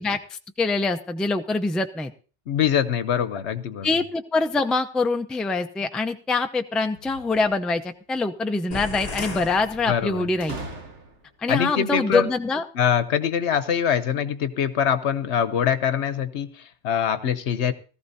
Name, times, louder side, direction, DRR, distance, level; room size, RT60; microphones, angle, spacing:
voice 1, 0.0-2.1 3.8-10.6 11.4-12.6, left 3 dB, ahead, 7 dB, 0.4 m, -24 dB
voice 2, 2.5-3.9 9.9-10.3 11.5-12.3 12.7-17.7, left 8 dB, 80° left, 13 dB, 1.1 m, -23 dB
sound 1, 6.9-7.9 10.4-11.5, right 2 dB, 80° right, 1.9 m, -39 dB
sound 2, 8.7-10.6, left 3 dB, 35° left, 1.0 m, -35 dB
18.5 x 14.0 x 2.7 m, 0.37 s
omnidirectional pair, 1.2 m